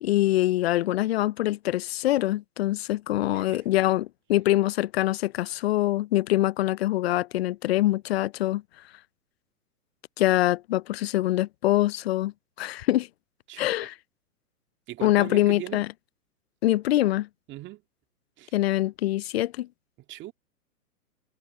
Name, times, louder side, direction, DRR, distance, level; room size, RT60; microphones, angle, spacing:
voice 1, 0.0-8.6 10.2-12.3 12.6-13.1 13.6-13.9 15.0-15.9 16.6-17.3 18.5-19.7, left 15 dB, 40° left, 0.5 m, -24 dB
voice 2, 3.3-3.7 13.5-13.9 14.9-15.8 17.5-17.8 18.4-18.5 20.1-20.3, right 15 dB, 25° right, 2.0 m, -40 dB
hypercardioid pair, 125°, 48 cm